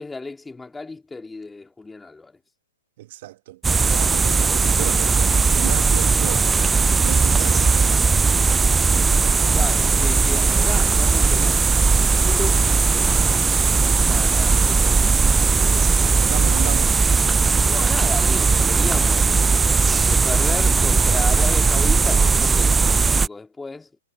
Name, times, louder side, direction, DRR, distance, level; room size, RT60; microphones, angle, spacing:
voice 1, 0.0-2.4 9.5-11.7 12.2-13.1 13.6-15.2 15.6-16.3 17.7-19.3 20.0-23.9, left 3 dB, 10° left, 3.2 m, -34 dB
voice 2, 3.0-6.5 7.0-8.0 16.2-16.9, right 16 dB, 50° right, 1.5 m, -34 dB
sound 1, 3.6-23.3, right 4 dB, 10° right, 0.4 m, -18 dB
hypercardioid pair, 120°, 0 cm